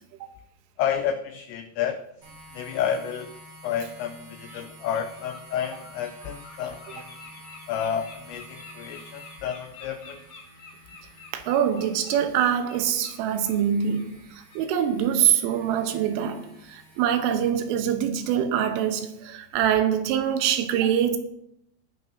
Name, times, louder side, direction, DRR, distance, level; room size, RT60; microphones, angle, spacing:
voice 1, 0.8-2.0 2.5-3.4 3.6-7.2 7.7-10.2, left 8 dB, 90° left, 2.5 m, -30 dB
sound 1, 2.2-17.5, equal, 50° right, 7.6 m, -50 dB
Bird, 3.6-3.8 4.2-4.6 4.9-13.6 13.9-14.1 14.5-14.7, left 5 dB, 55° left, 2.2 m, -48 dB
voice 2, 11.3-21.2, right 9 dB, 85° right, 3.4 m, -24 dB
19.5 x 9.9 x 2.7 m
omnidirectional pair, 5.8 m